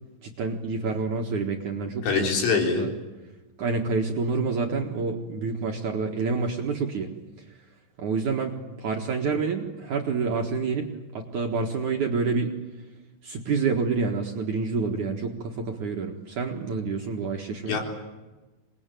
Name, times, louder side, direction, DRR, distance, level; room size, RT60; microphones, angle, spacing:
voice 1, 0.2-2.9 3.6-7.1 8.0-8.5 8.8-10.9 11.1-12.5 13.2-17.8, right 4 dB, 55° right, 2 dB, 2.3 m, -28 dB
voice 2, 2.0-2.9 17.6-17.8, left 5 dB, 80° left, 2 dB, 6.3 m, -24 dB
26.5 x 21.0 x 9.2 m, 1.2 s
omnidirectional pair, 5.5 m